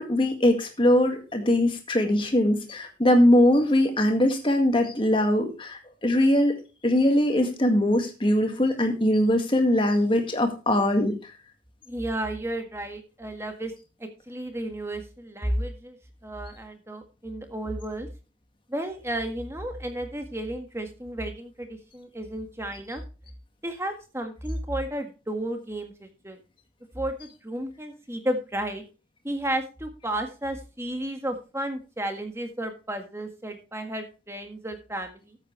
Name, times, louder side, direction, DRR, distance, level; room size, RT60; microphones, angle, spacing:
voice 1, 0.0-6.6 6.8-11.2, left 1 dB, 25° left, 4 dB, 2.0 m, -21 dB
voice 2, 11.9-13.7 14.0-16.0 16.2-18.1 18.7-23.0 23.6-26.4 26.9-28.8 29.2-35.4, right 1 dB, 15° right, 5 dB, 1.7 m, -33 dB
13.5 x 8.2 x 3.2 m, 0.32 s
head